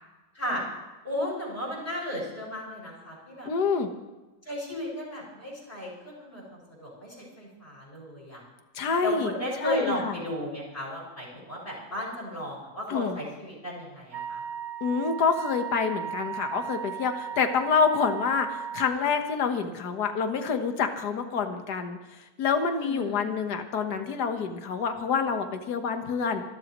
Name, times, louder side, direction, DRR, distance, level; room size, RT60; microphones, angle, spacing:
voice 1, 1.0-3.5 4.4-8.4 9.0-14.4 22.8-23.2, left 1 dB, 30° left, -5 dB, 6.5 m, -34 dB
voice 2, 3.4-3.9 8.7-10.1 12.9-13.2 14.8-22.0 22.4-26.4, left 5 dB, 60° left, 6 dB, 1.8 m, -27 dB
Wind instrument woodwind instrument, 14.1-18.9, right 8 dB, 75° right, 1.4 m, -36 dB
27.0 x 13.0 x 3.1 m, 1.2 s
omnidirectional pair, 2.0 m